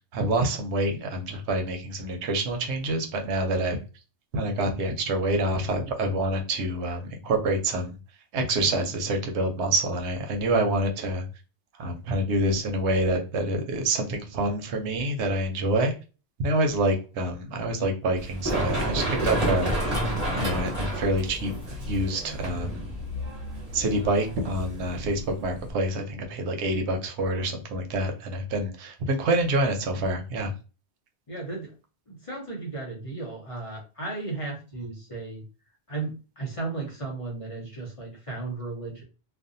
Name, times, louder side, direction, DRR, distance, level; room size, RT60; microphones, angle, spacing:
voice 1, 0.1-3.8 4.3-8.0 8.3-11.2 11.8-15.9 16.4-19.7 20.4-22.8 23.7-30.5, right 1 dB, 85° right, 4 dB, 0.9 m, -27 dB
Run, 18.2-25.7, right 1 dB, 35° right, 1.1 m, -30 dB
voice 2, 31.3-31.7 32.1-35.4 35.9-39.0, right 3 dB, 35° left, -2 dB, 0.6 m, -35 dB
2.5 x 2.1 x 2.5 m, 0.33 s
omnidirectional pair, 1.1 m